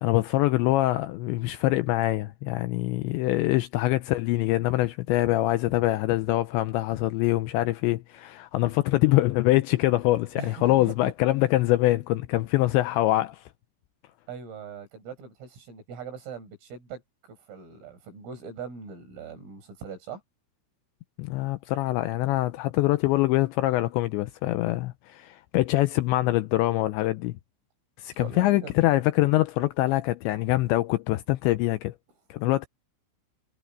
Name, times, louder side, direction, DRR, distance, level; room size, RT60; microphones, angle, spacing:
voice 1, 0.0-13.4 21.2-27.4 28.0-31.9 32.3-32.7, left 17 dB, 85° left, 2.6 m, -24 dB
voice 2, 10.4-11.1 14.3-17.0 17.3-20.2 28.2-28.7, right 6 dB, 80° right, 9.1 m, -41 dB
omnidirectional pair, 5.8 m